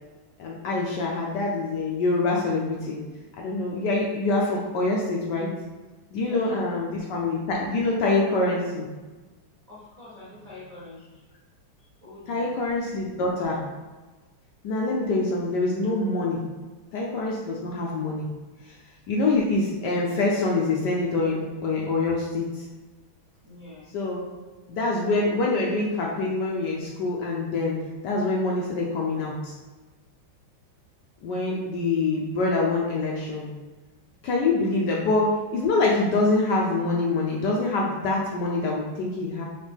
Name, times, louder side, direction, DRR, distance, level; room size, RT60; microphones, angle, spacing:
voice 1, 0.4-3.0 3.4-5.5 6.1-8.9 12.3-13.6 14.6-16.4 16.9-18.3 18.7-18.8 19.1-22.6 23.9-24.3 24.7-27.8 28.0-29.5 31.2-33.5 34.2-39.4, left 3 dB, 70° left, -2 dB, 1.0 m, -25 dB
voice 2, 6.2-6.7 9.7-11.2 12.0-12.5 23.4-23.9 34.7-34.9, left 2 dB, 40° right, -8 dB, 0.5 m, -45 dB
4.4 x 2.9 x 3.4 m, 1.2 s
omnidirectional pair, 2.3 m